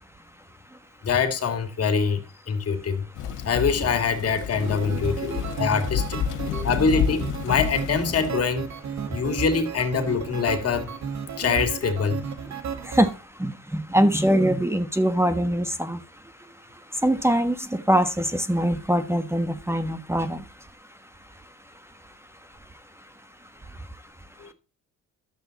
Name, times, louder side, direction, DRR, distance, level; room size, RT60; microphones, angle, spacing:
voice 1, 1.0-3.1 3.4-6.2 6.6-8.7 9.1-10.9 11.4-12.2 24.4-24.5, left 5 dB, 50° left, 2.2 m, -24 dB
Thunder / Rain, 3.2-8.3, left 8 dB, 90° left, 1.6 m, -30 dB
sound 1, 4.5-13.1, right 6 dB, 65° right, 1.6 m, -34 dB
voice 2, 4.6-5.6 6.4-6.7 9.0-9.2 11.3-11.4 12.4-24.5, equal, 10° right, 1.3 m, -26 dB
12.0 x 7.8 x 4.1 m
cardioid pair, 90°, 30 cm